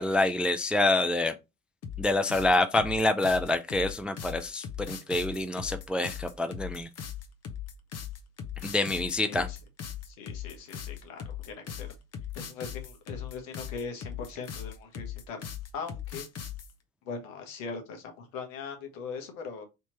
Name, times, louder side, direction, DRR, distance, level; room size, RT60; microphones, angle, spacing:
voice 1, 0.0-1.4 2.0-6.9 8.6-9.5, left 2 dB, 5° right, 0.3 m, -27 dB
sound 1, 1.8-16.7, left 9 dB, 40° left, 0.9 m, -39 dB
voice 2, 9.2-9.6 10.1-11.9 12.3-15.5 15.7-16.3 17.0-19.7, left 5 dB, 75° left, 1.3 m, -40 dB
3.4 x 2.9 x 4.2 m
hypercardioid pair, 65°, 40 cm